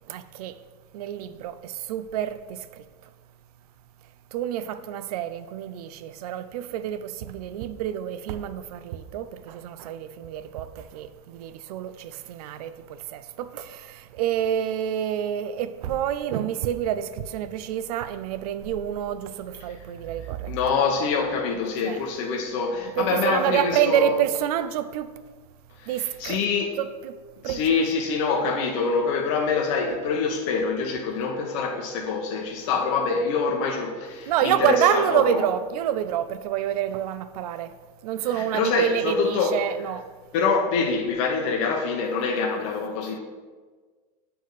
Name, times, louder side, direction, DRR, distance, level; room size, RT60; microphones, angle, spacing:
voice 1, 0.1-0.6 0.9-2.7 4.3-20.5 21.8-22.0 23.0-25.1 25.9-26.4 26.8-27.2 27.4-27.8 34.3-37.7 38.0-40.1, right 10 dB, 80° right, 0.4 m, -28 dB
voice 2, 20.5-24.1 25.8-26.7 27.4-35.4 38.3-39.6 40.3-43.2, left 5 dB, 55° left, 0.7 m, -25 dB
8.2 x 3.4 x 3.9 m
supercardioid pair, 170°, 19 cm